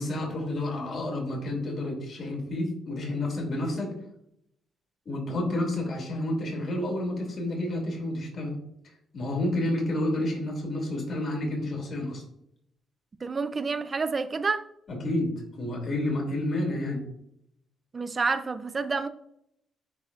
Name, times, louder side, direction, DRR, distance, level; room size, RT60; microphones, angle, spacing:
voice 1, 0.0-3.9 5.1-8.5 9.1-12.2 14.9-17.0, left 1 dB, 50° left, 0 dB, 2.4 m, -30 dB
voice 2, 13.2-14.7 17.9-19.1, right 4 dB, 30° right, 11 dB, 0.5 m, -28 dB
10.0 x 4.0 x 2.4 m, 0.74 s
cardioid pair, 110°, 0 cm